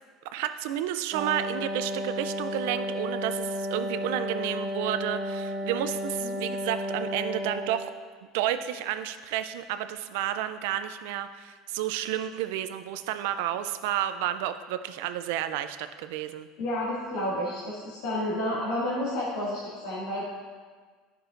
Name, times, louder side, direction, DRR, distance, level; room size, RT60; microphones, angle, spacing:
voice 1, 0.3-7.9 8.2-16.5, right 12 dB, 80° right, 10 dB, 0.4 m, -31 dB
Wind instrument woodwind instrument, 1.1-7.9, equal, 45° right, 1.8 m, -33 dB
voice 2, 16.6-20.2, left 1 dB, 90° left, -9 dB, 2.2 m, -30 dB
10.5 x 6.1 x 2.5 m, 1.5 s
supercardioid pair, 125°, 0 cm